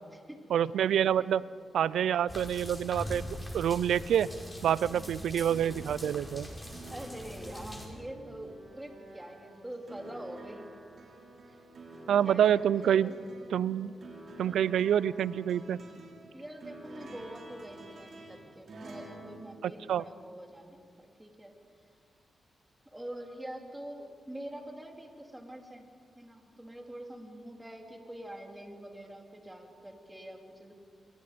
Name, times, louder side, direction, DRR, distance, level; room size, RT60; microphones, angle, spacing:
voice 1, 0.5-1.4 1.7-3.2 3.5-4.3 4.6-6.5 12.1-13.1 13.5-13.9 14.4-15.8 19.6-20.0, right 9 dB, 90° right, 19 dB, 0.5 m, -27 dB
sound 1, 2.3-7.9, equal, 10° left, 4.9 m, -42 dB
sound 2, 5.5-20.4 21.6-21.7, right 2 dB, 60° right, 6.2 m, -50 dB
voice 2, 6.9-10.7 12.2-13.2 16.3-21.5 22.9-25.9 26.1-30.7, right 1 dB, 10° right, 3 dB, 3.1 m, -45 dB
28.0 x 22.0 x 5.2 m, 2.2 s
cardioid pair, 80°, 0 cm